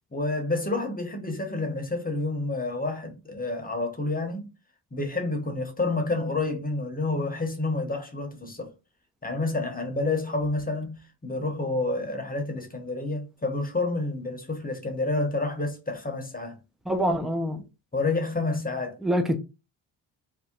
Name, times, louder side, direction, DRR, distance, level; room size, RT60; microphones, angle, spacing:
voice 1, 0.1-4.5 4.9-8.7 9.2-16.6 17.9-19.0, left 2 dB, 15° left, 1.0 m, -29 dB
voice 2, 16.9-17.6 19.0-19.4, equal, ahead, 0.5 m, -25 dB
2.8 x 2.1 x 3.7 m
supercardioid pair, 55°, 49 cm